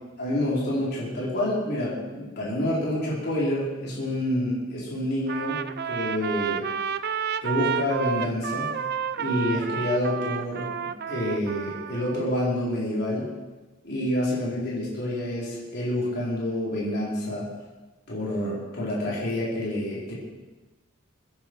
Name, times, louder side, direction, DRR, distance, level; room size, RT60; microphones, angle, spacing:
voice 1, 0.2-5.6 5.9-6.6 7.4-8.7 9.2-10.7 11.1-13.3 13.8-17.5 18.1-20.1, left 1 dB, 55° left, -6 dB, 4.2 m, -28 dB
Trumpet, 5.3-12.2, right 7 dB, 55° right, 0.5 m, -31 dB
23.0 x 10.0 x 4.7 m, 1.2 s
head